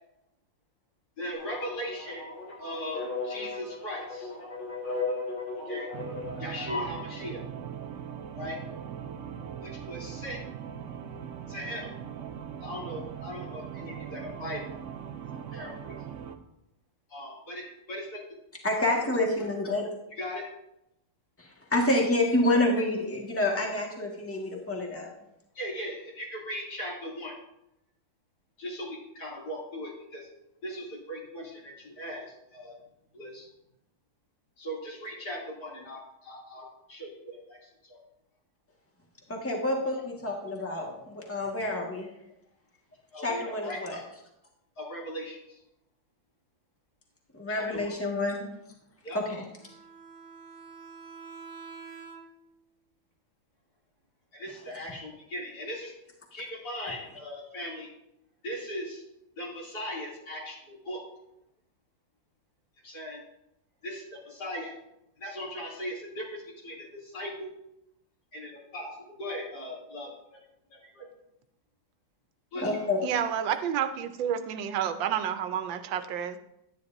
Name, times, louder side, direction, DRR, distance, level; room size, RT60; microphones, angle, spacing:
voice 1, 1.2-2.3 2.6-4.3 5.7-5.9 6.4-7.4 8.4-8.6 9.6-10.4 11.5-11.9 12.6-14.6 15.3-16.0 17.1-18.2 20.1-20.4 25.6-27.4 28.6-30.3 30.6-32.8 33.1-33.5 34.6-38.0 43.1-43.8 44.8-45.6 47.5-47.9 49.0-49.2 54.3-55.9 56.3-57.9 58.4-59.0 59.4-61.0 62.8-63.2 63.8-64.7 65.2-67.5 68.3-68.9 69.2-70.4 70.7-71.1 72.5-72.8, equal, 60° left, -5 dB, 3.4 m, -39 dB
sound 1, 1.3-7.0, left 3 dB, 85° left, 2.7 m, -36 dB
sound 2, 5.9-16.4, right 8 dB, 65° right, 0.8 m, -40 dB
voice 2, 18.6-19.9 21.4-25.1 39.3-42.1 43.2-44.0 47.3-48.5 49.1-49.4 72.6-73.0, left 1 dB, 10° left, -1 dB, 1.5 m, -28 dB
Bowed string instrument, 49.6-52.6, right 5 dB, 25° right, 1.1 m, -47 dB
voice 3, 73.0-76.4, right 9 dB, 85° right, 9 dB, 1.4 m, -30 dB
11.5 x 9.8 x 2.6 m, 0.82 s
omnidirectional pair, 2.0 m